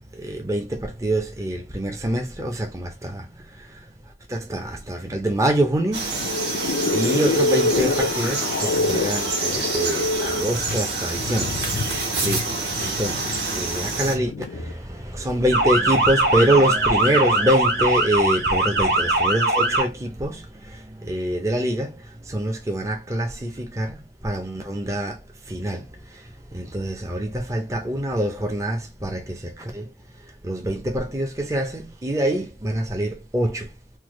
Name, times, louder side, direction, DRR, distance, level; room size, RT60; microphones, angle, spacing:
voice 1, 0.1-33.7, right 1 dB, 15° right, 0.5 m, -26 dB
Frog, 5.9-14.1, right 3 dB, 90° right, 1.3 m, -27 dB
sound 1, 6.0-14.7, left 3 dB, 90° left, 0.4 m, -27 dB
Motor vehicle (road) / Siren, 15.5-19.8, right 2 dB, 70° right, 0.9 m, -21 dB
3.2 x 2.1 x 3.0 m
head